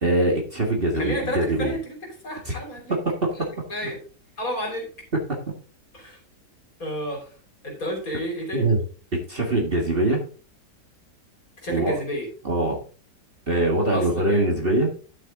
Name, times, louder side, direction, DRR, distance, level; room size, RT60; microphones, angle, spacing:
voice 1, 0.0-1.8 2.5-2.6 2.9-3.3 8.5-8.8 9.1-10.2 11.7-12.0 12.4-12.8 13.5-14.9, right 2 dB, 35° right, 0 dB, 1.8 m, -23 dB
voice 2, 0.9-2.0 2.2-3.0 3.3-4.0 4.4-4.9 5.9-6.2 6.8-7.3 7.6-8.7 11.6-12.3 13.9-14.5, equal, 55° left, 0 dB, 3.8 m, -31 dB
11.5 x 6.6 x 3.8 m, 0.39 s
omnidirectional pair, 1.8 m